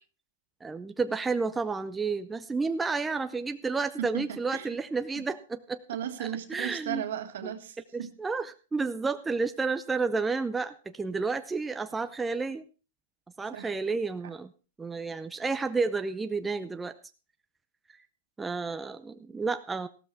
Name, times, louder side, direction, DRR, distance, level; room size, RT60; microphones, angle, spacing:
voice 1, 0.6-5.8 6.2-7.0 7.9-12.6 13.4-14.5 14.8-16.9 18.4-19.9, right 4 dB, 10° right, 9 dB, 0.6 m, -31 dB
voice 2, 4.0-4.8 5.9-8.1 13.5-13.7 14.2-14.3, right 10 dB, 75° right, 7 dB, 2.0 m, -36 dB
15.0 x 13.0 x 3.5 m, 0.34 s
hypercardioid pair, 140°, 0 cm